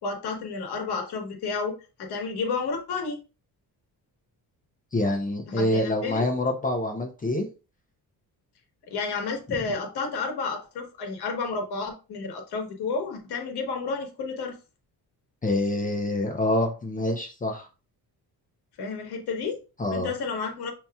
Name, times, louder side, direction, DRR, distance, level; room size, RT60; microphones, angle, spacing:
voice 1, 0.0-3.2 5.5-6.3 8.9-14.6 18.8-19.6 19.9-20.7, left 4 dB, 85° left, 1.2 m, -31 dB
voice 2, 4.9-7.5 15.4-17.7 19.8-20.1, left 1 dB, 20° left, 0.7 m, -26 dB
6.7 x 2.9 x 2.3 m
cardioid pair, 145°, 38 cm